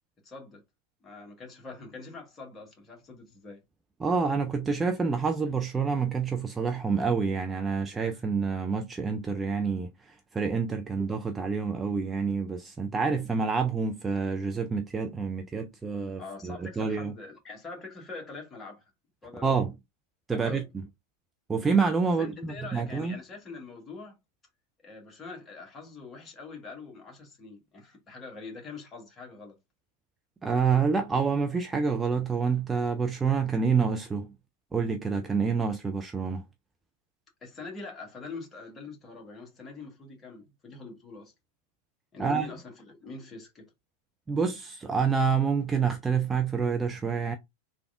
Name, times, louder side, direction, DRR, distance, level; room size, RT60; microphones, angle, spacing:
voice 1, 0.2-0.6 1.0-3.6 16.2-18.8 19.2-19.6 20.3-20.7 22.2-24.2 24.8-29.6 37.4-41.3 42.1-43.6, left 3 dB, 20° left, 1.4 m, -44 dB
voice 2, 4.0-17.1 19.4-19.7 20.3-20.8 21.5-23.2 30.4-34.3 34.7-36.4 42.2-42.5 44.3-47.4, right 5 dB, 15° right, 0.4 m, -28 dB
3.4 x 2.4 x 3.4 m
figure-of-eight pair, 90°, 0 cm